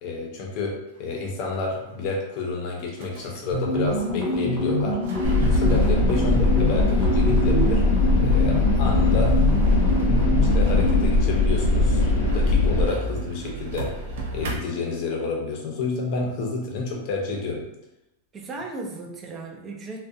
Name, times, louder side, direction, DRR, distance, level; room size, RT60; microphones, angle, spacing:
voice 1, 0.0-5.0 5.4-7.8 8.2-9.4 10.4-13.9 14.3-17.7, left 3 dB, 35° left, -1 dB, 0.6 m, -30 dB
sound 1, 1.7-1.8 2.4-2.5 2.8-3.4 3.7-4.7 5.0-14.6, right 2 dB, 70° right, 0.5 m, -34 dB
sound 2, 3.5-11.2, left 1 dB, 10° left, 0.8 m, -26 dB
sound 3, 5.2-12.8, left 2 dB, 90° left, 0.6 m, -20 dB
voice 2, 18.3-20.1, right 3 dB, 20° right, 0 dB, 0.4 m, -37 dB
2.3 x 2.1 x 2.6 m, 0.90 s
supercardioid pair, 170°, 0 cm